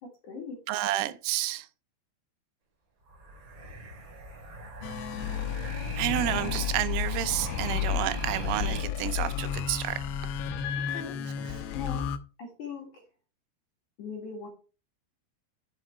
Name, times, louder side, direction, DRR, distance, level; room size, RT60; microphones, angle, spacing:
voice 1, 0.0-0.6 10.9-11.2 11.7-12.1 12.4-13.0 14.0-14.5, left 5 dB, 55° left, 2.4 m, -40 dB
voice 2, 0.7-1.7 6.0-10.1, right 14 dB, 90° right, 3.4 m, -30 dB
sound 1, 3.1-8.8, right 2 dB, 40° right, 2.9 m, -40 dB
sound 2, 4.8-12.2, left 9 dB, 80° left, 2.5 m, -32 dB
7.6 x 7.5 x 4.3 m
omnidirectional pair, 5.7 m